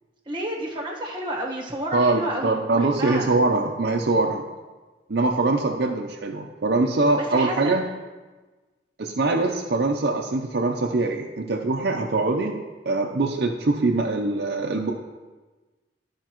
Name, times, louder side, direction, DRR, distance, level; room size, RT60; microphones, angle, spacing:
voice 1, 0.3-3.3 7.2-7.8, right 1 dB, 25° right, -1 dB, 1.3 m, -30 dB
voice 2, 1.9-4.4 5.1-7.8 9.0-12.6 12.8-14.9, right 3 dB, 65° right, 1 dB, 0.6 m, -23 dB
13.0 x 5.1 x 3.0 m, 1.3 s
head